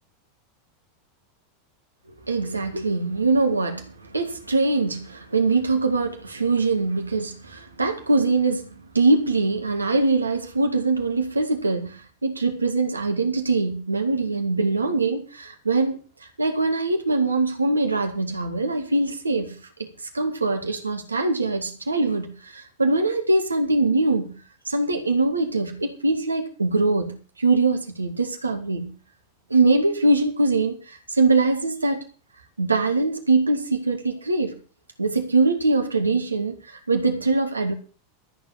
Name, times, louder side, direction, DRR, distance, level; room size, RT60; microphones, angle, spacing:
voice 1, 2.3-8.7 8.9-16.0 16.4-19.9 20.1-24.4 24.7-28.9 29.5-32.0 32.6-34.5 35.0-37.7, right 3 dB, 85° right, 2.5 m, -23 dB
14.0 x 7.3 x 7.1 m
figure-of-eight pair, 85°, 0 cm